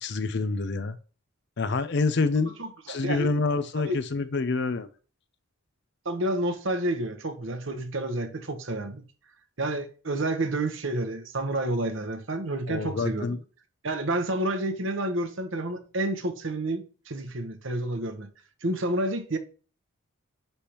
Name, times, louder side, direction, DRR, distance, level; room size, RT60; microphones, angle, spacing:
voice 1, 0.0-1.0 1.6-2.5 2.9-4.9 12.7-13.4, left 3 dB, 50° left, 0.5 m, -27 dB
voice 2, 2.6-3.3 3.8-4.0 6.0-9.0 9.6-13.3 13.8-18.3 18.6-19.4, right 1 dB, 60° right, 1.0 m, -29 dB
9.8 x 3.4 x 2.9 m
head